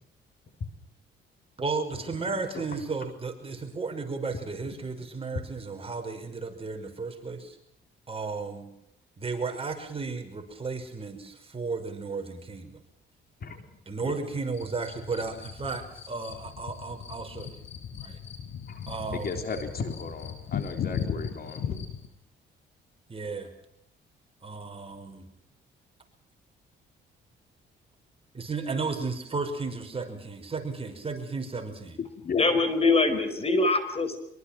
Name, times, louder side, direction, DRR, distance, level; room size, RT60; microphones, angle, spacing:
voice 1, 1.6-7.6 8.1-8.7 9.2-12.8 13.9-17.6 18.0-18.2 18.9-19.4 23.1-23.5 24.4-25.3 28.3-32.0, right 4 dB, 30° right, 4 dB, 5.8 m, -34 dB
voice 2, 13.4-14.2 18.7-18.9 19.1-21.8 32.2-32.5, left 5 dB, 50° left, 6 dB, 3.9 m, -35 dB
sound 1, 14.5-22.1, left 7 dB, 70° left, 7.2 m, -37 dB
voice 3, 32.4-34.2, left 3 dB, 30° left, 10 dB, 4.9 m, -23 dB
25.0 x 23.5 x 6.1 m, 0.76 s
cardioid pair, 90°, 20 cm